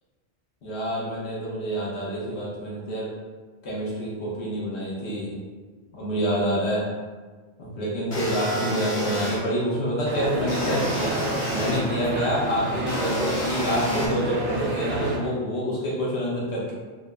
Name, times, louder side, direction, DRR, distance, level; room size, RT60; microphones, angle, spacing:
voice 1, 0.6-3.1 3.6-5.4 5.9-6.8 7.6-11.2 11.5-16.7, equal, 70° left, -5 dB, 1.1 m, -27 dB
sound 1, 8.1-9.4 10.5-11.8 12.9-14.1, equal, 50° left, 0.8 m, -30 dB
sound 2, 10.0-15.2, right 1 dB, 85° right, 0.9 m, -30 dB
3.9 x 2.0 x 2.3 m, 1.4 s
omnidirectional pair, 1.2 m